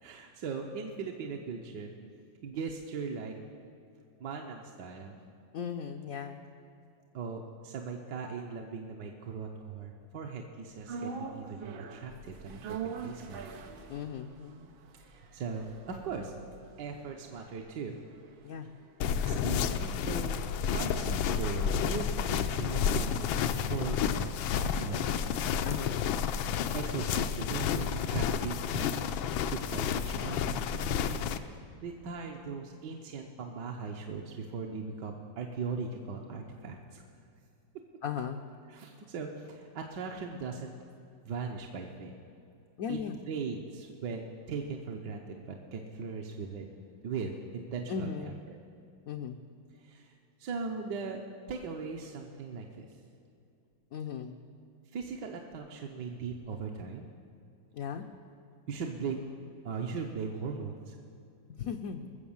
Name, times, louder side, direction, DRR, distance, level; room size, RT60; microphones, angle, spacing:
voice 1, 0.0-1.9 2.4-3.3 4.2-5.2 7.1-12.8 13.0-13.5 14.9-16.3 16.8-18.0 19.2-20.4 20.6-24.3 24.8-25.1 26.7-31.2 31.8-37.0 38.7-40.7 41.2-42.1 42.9-43.0 43.3-46.7 47.0-48.6 49.8-51.2 51.5-53.0 54.9-57.1 58.7-59.2 59.6-61.0, right 5 dB, 65° right, 1 dB, 1.4 m, -39 dB
voice 2, 5.5-6.4 13.9-14.7 18.4-18.7 25.6-26.0 38.0-38.4 42.8-43.2 47.9-48.4 49.1-49.4 53.9-54.4 57.7-58.1 61.5-62.1, left 7 dB, 70° left, 5 dB, 0.8 m, -37 dB
sound 1, 10.9-19.2 19.4-19.5, right 6 dB, 90° right, 1.7 m, -44 dB
sound 2, 19.0-31.4, left 7 dB, 85° left, 1.4 m, -31 dB
21.5 x 7.2 x 7.1 m, 2.6 s
omnidirectional pair, 2.1 m